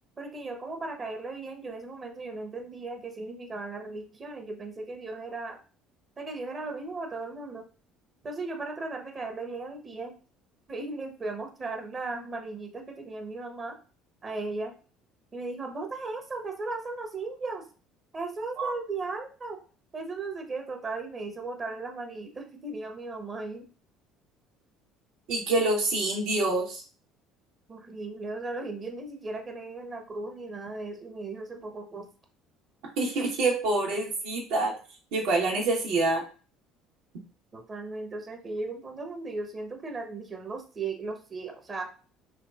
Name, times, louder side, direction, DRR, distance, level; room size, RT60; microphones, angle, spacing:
voice 1, 0.2-5.6 6.2-7.6 8.2-10.1 10.7-13.8 14.2-14.7 15.3-17.6 18.1-19.6 19.9-23.7 27.7-32.1 37.5-41.9, right 3 dB, 35° right, 4 dB, 1.0 m, -36 dB
voice 2, 25.3-26.8 33.0-34.7 35.1-36.2, right 2 dB, 65° right, -1 dB, 1.4 m, -26 dB
3.8 x 3.1 x 2.4 m, 0.36 s
hypercardioid pair, 60°, 0 cm